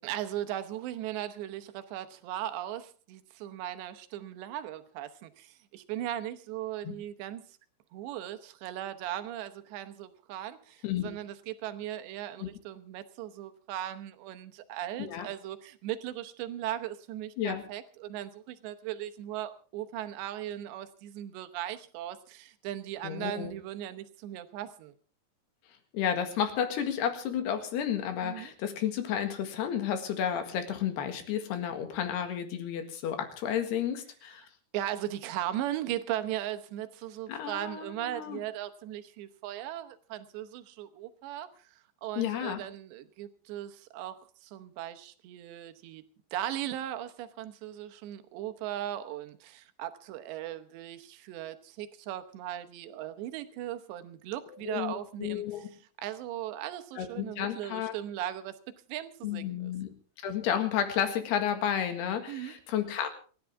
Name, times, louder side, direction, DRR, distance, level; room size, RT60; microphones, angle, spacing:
voice 1, 0.0-7.4 7.9-24.9 28.2-28.5 34.7-41.7 42.0-55.7 56.0-58.6 58.9-59.7 62.3-62.5, right 12 dB, 75° right, 10 dB, 3.1 m, -38 dB
voice 2, 10.8-11.1 12.4-12.5 15.0-15.3 17.4-17.6 23.0-23.5 25.9-34.4 37.3-38.4 42.2-42.6 54.7-55.6 57.0-57.9 59.2-59.9 60.2-63.1, left 9 dB, 70° left, 7 dB, 3.7 m, -32 dB
28.0 x 11.5 x 3.5 m, 0.40 s
omnidirectional pair, 5.3 m